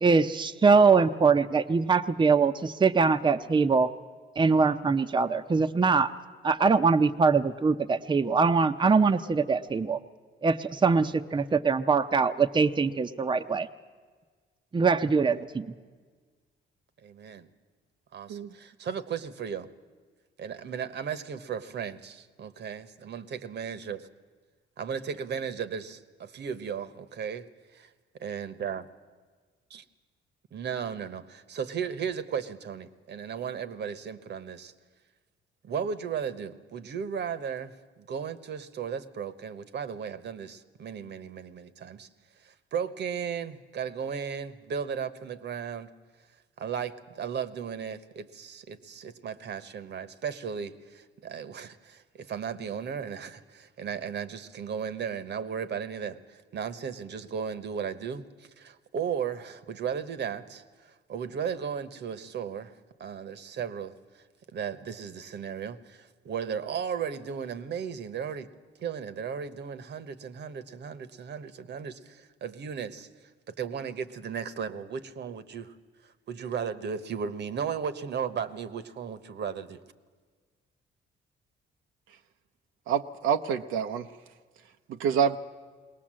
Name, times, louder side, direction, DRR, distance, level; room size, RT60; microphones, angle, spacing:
voice 1, 0.0-3.9 4.4-6.1 6.4-10.0 10.4-13.7 14.7-15.7, right 4 dB, 25° right, 8 dB, 0.7 m, -23 dB
voice 2, 17.0-17.5 18.1-19.7 20.4-24.1 24.8-27.4 28.2-28.8 29.7-29.8 30.5-31.2 31.5-34.7 35.6-42.1 42.4-45.9 46.6-60.6 61.1-62.7 63.0-63.9 64.5-68.5 68.8-73.1 73.5-75.7 76.3-79.8, right 7 dB, 60° right, 12 dB, 1.1 m, -35 dB
voice 3, 82.9-84.1 84.9-85.4, right 7 dB, 85° right, 6 dB, 0.7 m, -27 dB
21.0 x 18.5 x 7.6 m, 1.5 s
cardioid pair, 90°, 20 cm